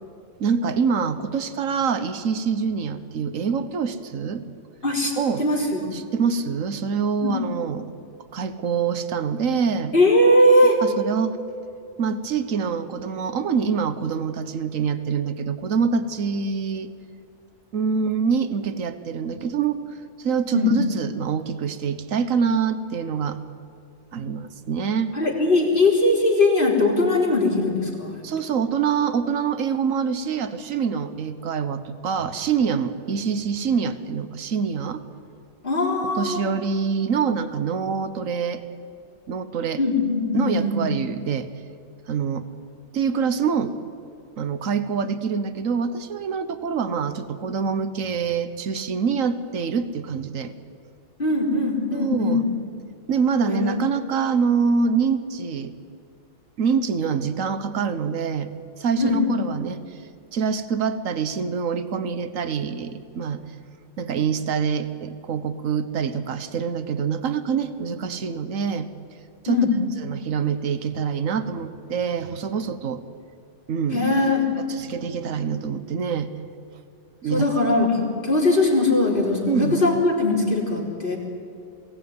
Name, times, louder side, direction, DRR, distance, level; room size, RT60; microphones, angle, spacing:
voice 1, 0.4-4.4 5.2-5.4 5.9-7.9 8.3-10.0 10.8-11.4 12.0-16.9 17.7-19.8 20.2-23.4 24.1-25.1 28.2-35.0 36.2-38.6 39.3-39.8 40.3-41.5 42.1-42.5 42.9-43.7 44.4-50.5 51.9-52.4 53.1-55.7 56.6-58.5 58.8-59.8 60.3-63.4 64.0-68.9 69.4-69.6 70.0-73.0 73.7-74.1 74.7-76.3 77.2-77.5 79.5-79.8, right 6 dB, 80° right, 11 dB, 1.5 m, -25 dB
voice 2, 4.8-5.1 5.4-5.9 7.2-7.4 9.9-10.8 20.5-20.8 25.1-28.2 35.6-36.4 39.8-40.7 51.2-52.4 53.4-53.8 59.0-59.5 69.5-69.7 73.9-74.5 77.2-81.2, left 2 dB, 40° left, -1 dB, 4.1 m, -20 dB
22.0 x 17.5 x 9.5 m, 2.4 s
omnidirectional pair, 1.4 m